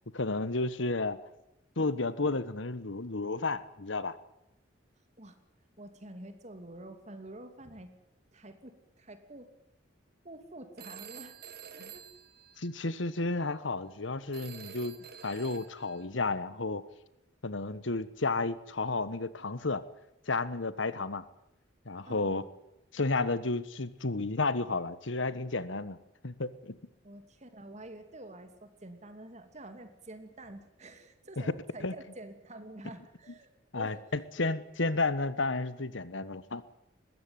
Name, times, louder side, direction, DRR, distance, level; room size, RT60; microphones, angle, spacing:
voice 1, 0.1-1.2 1.8-4.1 11.8-11.9 12.6-15.0 15.2-16.8 17.4-19.8 20.3-21.2 21.8-22.4 22.9-26.0 26.2-26.8 31.8-31.9 33.7-36.6, left 3 dB, 85° left, 15 dB, 1.3 m, -32 dB
voice 2, 5.8-7.9 8.3-9.5 10.2-11.3 11.7-12.1 22.1-22.5 27.0-34.0, right 1 dB, 35° right, 8 dB, 2.7 m, -48 dB
Telephone, 10.8-13.1 14.3-16.1, right 8 dB, 55° right, 1.6 m, -49 dB
20.5 x 16.0 x 9.7 m, 0.86 s
head